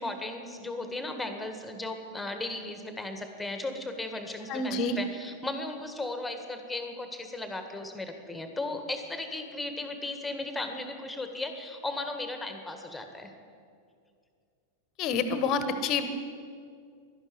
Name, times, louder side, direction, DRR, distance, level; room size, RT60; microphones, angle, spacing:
voice 1, 0.0-13.3, left 2 dB, 5° left, 6 dB, 1.7 m, -36 dB
voice 2, 4.5-5.0 15.0-16.1, left 4 dB, 40° left, 10 dB, 1.3 m, -28 dB
12.0 x 11.5 x 9.6 m, 2.3 s
figure-of-eight pair, 90°, 0 cm